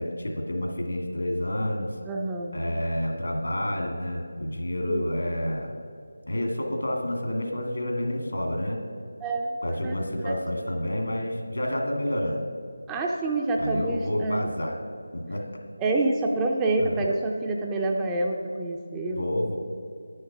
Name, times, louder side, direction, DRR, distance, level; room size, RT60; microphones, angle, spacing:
voice 1, 0.0-1.9 2.5-5.7 6.3-8.8 9.6-12.4 13.6-14.8 15.1-15.5 16.8-17.0 19.2-19.6, left 1 dB, 75° left, 1 dB, 1.9 m, -29 dB
voice 2, 2.1-2.6 4.9-5.0 9.2-10.0 12.9-14.4 15.8-19.2, right 2 dB, 10° right, 0 dB, 0.5 m, -27 dB
9.6 x 6.6 x 5.9 m, 2.3 s
figure-of-eight pair, 165°, 0 cm